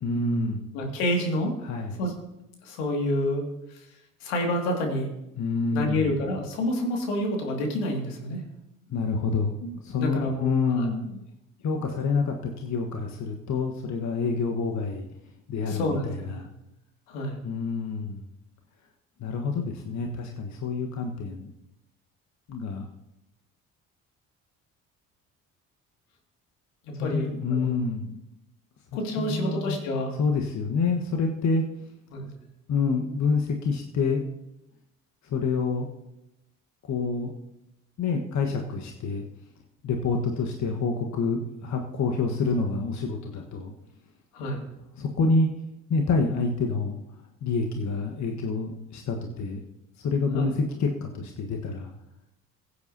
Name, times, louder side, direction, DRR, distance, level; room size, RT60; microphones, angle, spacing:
voice 1, 0.0-0.6 1.6-2.0 5.4-6.1 8.9-11.2 11.6-15.1 15.5-16.5 17.4-18.2 19.2-21.5 22.5-22.9 27.0-28.2 28.9-29.8 30.2-31.6 32.7-34.2 35.2-35.9 36.8-37.3 38.0-39.2 39.8-43.7 45.0-45.5 45.9-47.0 47.4-49.6 50.0-51.9, left 4 dB, 45° left, 3 dB, 1.4 m, -27 dB
voice 2, 0.7-1.6 2.0-2.1 2.6-3.5 4.2-5.1 5.7-8.4 10.0-10.5 10.8-10.9 15.7-16.3 17.1-17.4 26.9-27.3 27.6-27.7 28.9-30.2 32.1-32.3 44.3-44.6 50.3-50.5, left 1 dB, 70° left, 2 dB, 2.4 m, -28 dB
21.0 x 8.3 x 2.8 m, 0.89 s
figure-of-eight pair, 45°, 40 cm